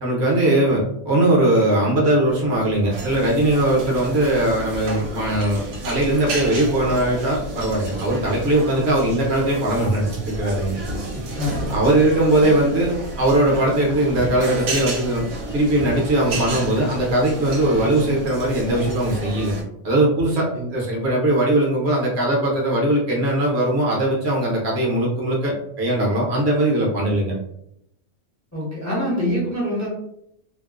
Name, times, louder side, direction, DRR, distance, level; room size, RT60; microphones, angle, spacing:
voice 1, 0.0-10.8 11.7-15.2 15.5-19.5 19.8-27.3, right 1 dB, 55° right, -3 dB, 0.9 m, -20 dB
sound 1, 2.9-19.6, right 1 dB, 75° right, 1.1 m, -31 dB
voice 2, 11.4-11.7 20.5-20.7 28.5-29.9, equal, 20° left, -7 dB, 0.5 m, -25 dB
2.8 x 2.0 x 2.3 m, 0.77 s
omnidirectional pair, 1.5 m